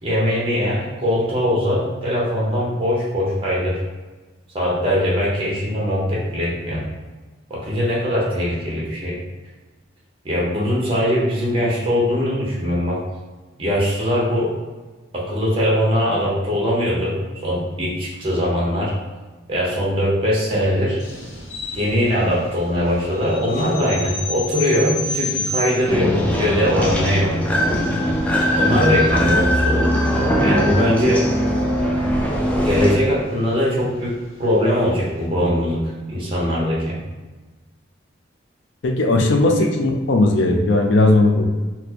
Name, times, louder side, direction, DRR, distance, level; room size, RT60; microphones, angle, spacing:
voice 1, 0.0-3.8 4.5-6.8 7.5-9.2 10.2-13.0 13.6-14.5 15.1-17.2 17.4-18.9 19.5-21.0 21.7-27.3 28.5-29.9 30.4-31.2 32.6-34.1 34.4-35.8 36.1-37.0, equal, 30° right, -5 dB, 0.9 m, -21 dB
sound 1, 21.0-35.1, left 1 dB, 85° left, 0.9 m, -34 dB
sound 2, 25.9-32.9, equal, 5° left, 0.3 m, -20 dB
voice 2, 38.8-41.4, left 2 dB, 70° left, 2 dB, 0.4 m, -17 dB
4.2 x 2.1 x 2.8 m, 1.2 s
head